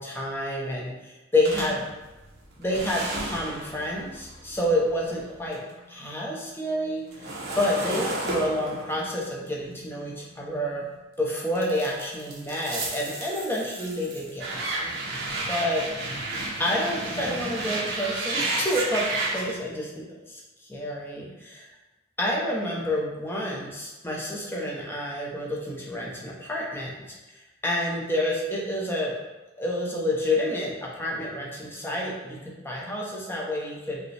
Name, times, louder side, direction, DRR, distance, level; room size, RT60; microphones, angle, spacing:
voice 1, 0.0-1.9 2.6-5.6 5.9-10.8 11.2-14.9 15.5-15.8 16.6-20.4 20.7-21.7 22.2-26.9 27.6-29.1 29.6-34.0, left 1 dB, 10° left, -3 dB, 0.7 m, -29 dB
sound 1, 1.4-5.7 6.1-11.0 11.5-19.5, right 2 dB, 60° right, 0.9 m, -33 dB
4.9 x 2.3 x 3.2 m, 1.1 s
head